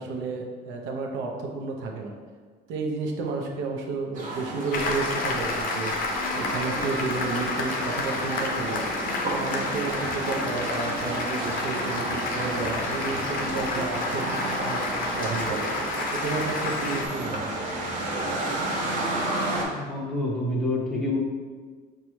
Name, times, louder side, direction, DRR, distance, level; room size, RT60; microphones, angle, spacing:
voice 1, 0.0-2.1 2.7-5.9 6.3-8.8 9.2-14.8 15.2-15.7 16.1-17.5, right 4 dB, 75° right, 1 dB, 0.6 m, -31 dB
sound 1, 4.1-19.7, right 1 dB, 45° right, 0.7 m, -31 dB
Applause, 4.7-17.1, left 3 dB, 50° left, 0.5 m, -30 dB
voice 2, 19.7-21.2, left 2 dB, ahead, -4 dB, 0.6 m, -27 dB
5.1 x 2.3 x 3.0 m, 1.5 s
cardioid pair, 155°, 20 cm